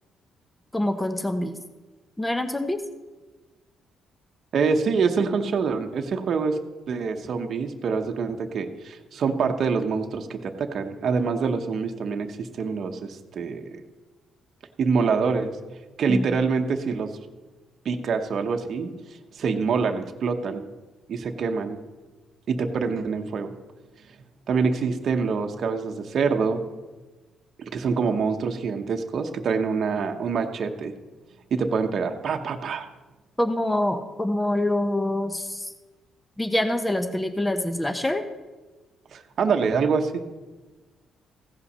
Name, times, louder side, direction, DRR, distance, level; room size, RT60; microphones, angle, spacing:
voice 1, 0.7-1.5 2.2-2.8 16.1-16.4 33.4-35.7 36.4-38.2, left 1 dB, 10° left, 7 dB, 0.8 m, -25 dB
voice 2, 4.5-6.6 6.9-13.8 14.8-15.5 16.0-17.1 17.8-18.9 19.3-20.6 21.1-21.8 22.5-23.5 24.5-26.6 27.6-30.9 31.5-32.9 39.1-40.2, right 5 dB, 60° right, 4 dB, 0.9 m, -25 dB
15.5 x 5.6 x 5.5 m, 1.2 s
cardioid pair, 90°, 0 cm